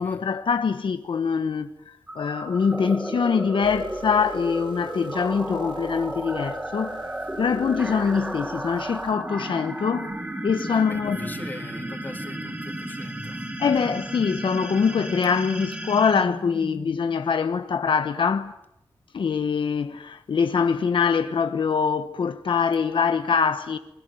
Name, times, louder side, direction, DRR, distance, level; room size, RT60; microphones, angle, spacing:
voice 1, 0.0-7.0 7.4-10.2 10.4-11.2 13.6-18.5 19.1-23.8, left 6 dB, 70° left, 1.1 m, -24 dB
sound 1, 2.1-17.2, right 1 dB, 15° right, 4.1 m, -33 dB
sound 2, 3.6-9.4, right 4 dB, 65° right, 2.5 m, -47 dB
voice 2, 7.0-7.4 10.7-13.5, left 2 dB, 20° left, 3.2 m, -42 dB
29.0 x 21.5 x 9.2 m
wide cardioid pair, 160°, 9 cm